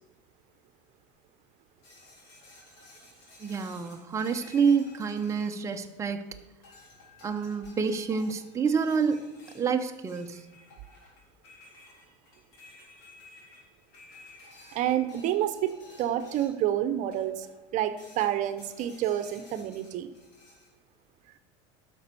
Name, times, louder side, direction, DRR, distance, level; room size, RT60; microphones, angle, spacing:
sound 1, 1.8-6.2 6.6-16.7 17.1-17.6 18.0-20.7, left 2 dB, 75° left, 4.1 m, -54 dB
voice 1, 3.4-6.3 7.2-9.2 9.5-10.4, right 6 dB, 20° right, 4 dB, 0.8 m, -28 dB
voice 2, 14.7-17.5 17.7-20.1, right 11 dB, 50° right, 11 dB, 0.8 m, -29 dB
11.0 x 6.1 x 6.9 m, 1.1 s
supercardioid pair, 120°, 16 cm